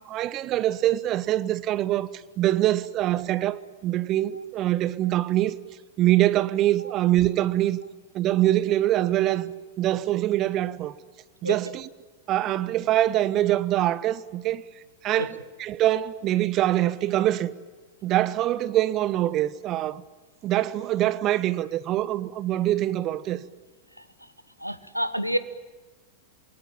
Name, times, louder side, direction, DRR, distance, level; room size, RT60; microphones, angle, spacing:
voice 1, 0.0-5.6 6.0-7.8 8.1-9.5 9.8-10.9 11.4-11.9 12.3-14.6 15.0-17.5 18.0-20.0 20.4-23.4, right 14 dB, 35° right, 1.0 m, -24 dB
voice 2, 24.6-25.4, equal, 90° right, 1.4 m, -27 dB
28.0 x 22.0 x 8.9 m
figure-of-eight pair, 90°, 0 cm